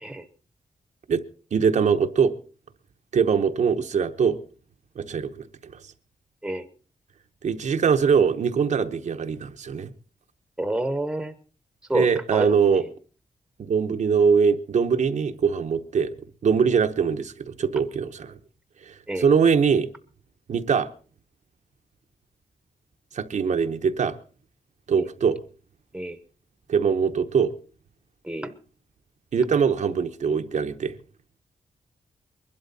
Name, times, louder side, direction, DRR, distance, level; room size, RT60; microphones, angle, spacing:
voice 1, 1.5-2.3 3.1-4.4 5.0-5.8 7.4-9.9 11.9-12.8 13.6-16.1 16.4-18.4 18.9-19.9 20.5-20.9 23.1-24.1 24.9-25.4 26.7-27.5 29.3-31.0, right 6 dB, 60° right, 1.0 m, -22 dB
voice 2, 10.6-11.3 11.9-12.9 19.1-19.3 24.9-25.1 25.9-26.2 28.2-28.5, right 1 dB, 5° right, 1.0 m, -29 dB
22.0 x 12.0 x 4.1 m
wide cardioid pair, 175°, 14 cm